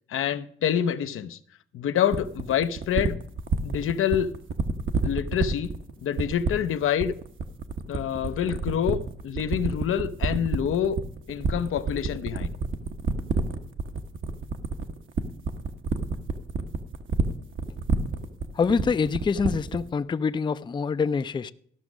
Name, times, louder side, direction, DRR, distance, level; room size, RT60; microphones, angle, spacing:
voice 1, 0.1-1.4 1.7-3.2 3.6-4.4 5.0-5.7 6.0-7.1 7.9-9.0 9.2-11.0 11.3-12.6, left 9 dB, 80° left, 0.6 m, -26 dB
sound 1, 2.1-19.9, right 4 dB, 70° right, 1.0 m, -27 dB
voice 2, 18.5-21.5, left 5 dB, 20° left, 0.4 m, -25 dB
13.5 x 6.1 x 6.1 m
cardioid pair, 110°, 21 cm